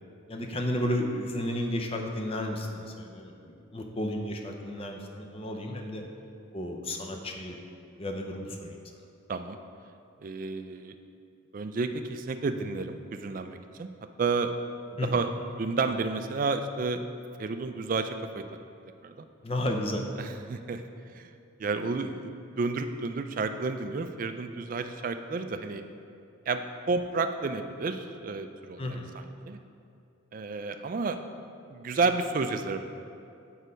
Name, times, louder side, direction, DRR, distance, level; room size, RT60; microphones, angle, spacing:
voice 1, 0.3-6.0 6.5-7.6 8.0-8.8 15.0-15.2 19.4-20.1 28.8-29.1, left 1 dB, 25° left, 3 dB, 0.6 m, -32 dB
voice 2, 10.2-10.9 11.5-13.9 14.2-14.5 15.0-15.3 15.6-17.0 17.4-18.4 19.0-19.3 20.2-20.8 21.1-21.3 21.6-25.8 26.5-29.0 29.5-29.6 30.3-31.2 31.7-32.9, right 4 dB, 40° right, 8 dB, 0.3 m, -31 dB
6.4 x 5.4 x 5.1 m, 2.5 s
head